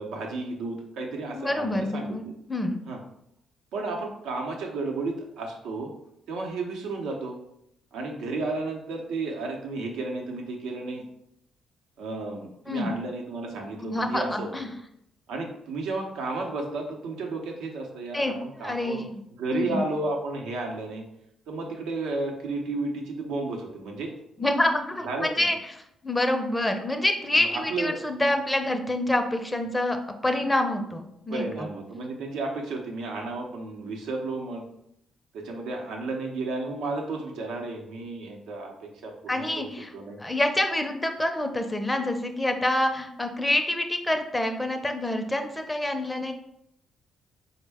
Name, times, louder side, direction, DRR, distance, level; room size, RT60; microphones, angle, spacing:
voice 1, 0.0-2.3 2.9-3.0 3.7-5.9 6.3-7.4 7.9-11.0 12.0-14.5 15.3-19.1 19.4-21.0 21.5-24.1 25.0-25.5 27.3-27.9 31.3-34.6 35.3-40.2, right 3 dB, 85° right, 1 dB, 0.7 m, -33 dB
voice 2, 1.3-2.8 12.7-12.9 13.8-14.7 18.1-19.2 19.5-19.8 24.4-30.0 30.2-31.7 39.3-39.9 40.2-46.3, left 1 dB, 10° left, 5 dB, 0.5 m, -27 dB
4.3 x 2.1 x 3.4 m, 0.77 s
cardioid pair, 90°, 0 cm